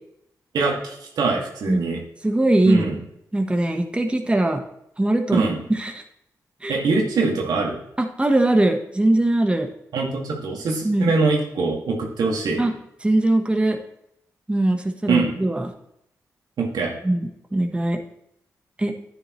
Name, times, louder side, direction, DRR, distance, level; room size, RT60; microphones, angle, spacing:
voice 1, 0.5-2.0 2.7-3.0 5.3-5.6 6.7-7.8 9.9-12.6 15.1-15.3 16.6-16.9, right 4 dB, 85° right, 0 dB, 2.1 m, -23 dB
voice 2, 2.2-3.0 3.3-4.6 5.0-6.0 6.6-6.8 8.0-9.7 10.8-11.1 12.6-12.7 13.0-13.8 14.5-15.7 17.0-18.0 18.8-19.0, right 1 dB, 15° right, 4 dB, 1.2 m, -21 dB
10.0 x 9.5 x 3.1 m, 0.77 s
cardioid pair, 65°, 7 cm